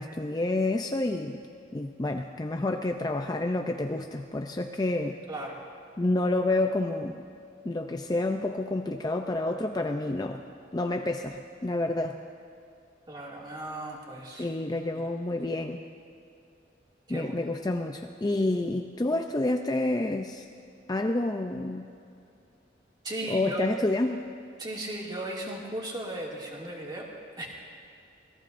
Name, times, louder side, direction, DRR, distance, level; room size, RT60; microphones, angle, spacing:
voice 1, 0.0-1.5 1.7-5.2 6.0-7.3 7.6-10.4 10.7-12.2 14.4-15.8 17.1-20.5 20.9-21.9 23.3-24.2, left 2 dB, 20° left, 5 dB, 0.5 m, -29 dB
voice 2, 5.3-5.6 13.1-14.5 14.9-15.1 17.1-17.5 23.0-23.6 24.6-27.1 27.4-27.5, right 1 dB, 25° right, -3 dB, 2.3 m, -36 dB
26.5 x 18.5 x 2.6 m, 2.6 s
head